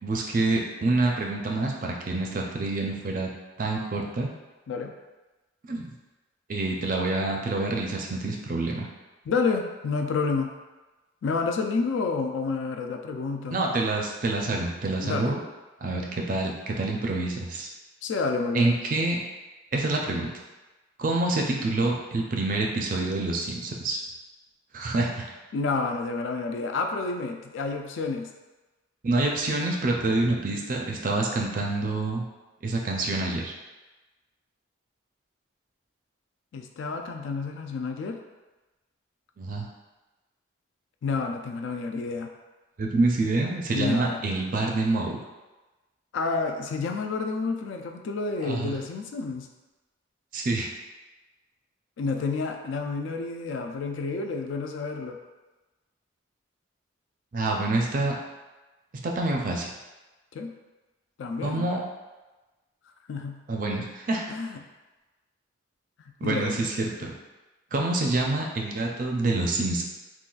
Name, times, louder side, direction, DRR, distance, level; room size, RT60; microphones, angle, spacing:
voice 1, 0.0-3.3 3.6-4.3 5.7-5.9 6.5-8.9 13.5-15.4 15.8-17.7 18.5-19.2 19.7-20.3 21.0-24.0 24.7-25.3 29.0-32.2 32.6-33.5 39.4-39.7 42.8-45.2 48.4-48.7 50.3-50.7 57.3-58.2 59.0-59.7 61.4-61.8 63.5-64.2 66.2-67.1 67.7-69.8, right 2 dB, 40° right, 0 dB, 0.4 m, -27 dB
voice 2, 9.3-10.5 11.2-13.6 15.0-15.4 18.0-18.7 25.5-28.3 36.5-38.2 41.0-42.3 43.7-44.2 46.1-49.5 52.0-55.2 60.3-60.5 61.2-61.7 63.1-63.4 64.3-64.6 66.2-66.6, left 4 dB, 70° left, 4 dB, 0.3 m, -29 dB
3.8 x 2.3 x 2.3 m, 1.2 s
head